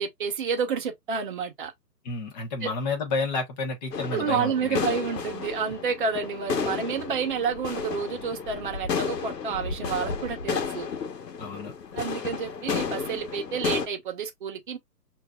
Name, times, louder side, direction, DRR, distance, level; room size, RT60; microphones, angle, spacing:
voice 1, 0.0-1.7 2.6-2.7 4.1-10.9 12.0-14.8, right 6 dB, 30° right, 0.9 m, -29 dB
voice 2, 2.0-4.8 11.4-11.7, left 3 dB, 25° left, 1.1 m, -30 dB
sound 1, 3.9-13.9, left 5 dB, 75° left, 1.3 m, -32 dB
5.8 x 2.7 x 2.3 m
hypercardioid pair, 160°, 49 cm